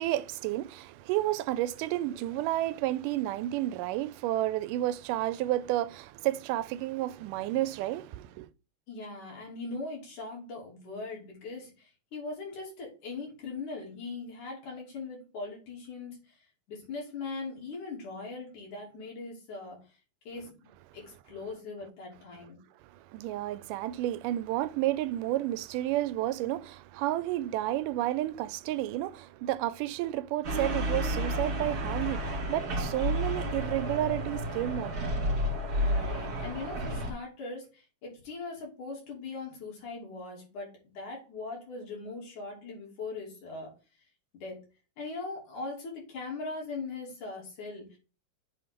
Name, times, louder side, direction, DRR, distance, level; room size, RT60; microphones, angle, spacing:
voice 1, 0.0-8.5 22.8-35.1, right 14 dB, 85° right, 2.1 m, -31 dB
voice 2, 8.9-16.4 16.7-19.8 20.3-22.6 35.8-43.7 44.3-44.6 45.0-48.0, left 3 dB, 70° left, 4.6 m, -40 dB
sound 1, 30.4-37.1, equal, 45° right, 3.1 m, -31 dB
8.1 x 3.8 x 5.1 m
omnidirectional pair, 3.7 m